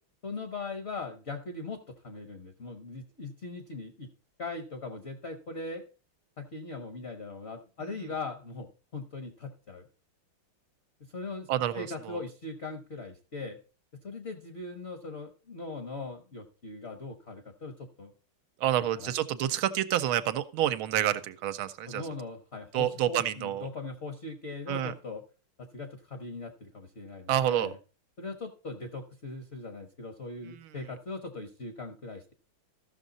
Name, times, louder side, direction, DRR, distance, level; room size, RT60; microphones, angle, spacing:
voice 1, 0.2-4.1 4.4-5.8 6.4-9.9 11.1-11.5 11.7-13.6 14.0-18.1 19.0-19.1 21.9-25.2 25.6-27.8 28.2-32.3, left 3 dB, 45° left, 6 dB, 0.9 m, -40 dB
voice 2, 11.5-12.2 18.6-22.0 22.7-23.7 24.7-24.9 27.3-27.7 30.5-30.7, right 12 dB, 80° right, 11 dB, 1.5 m, -28 dB
14.0 x 6.3 x 4.0 m, 0.35 s
omnidirectional pair, 2.3 m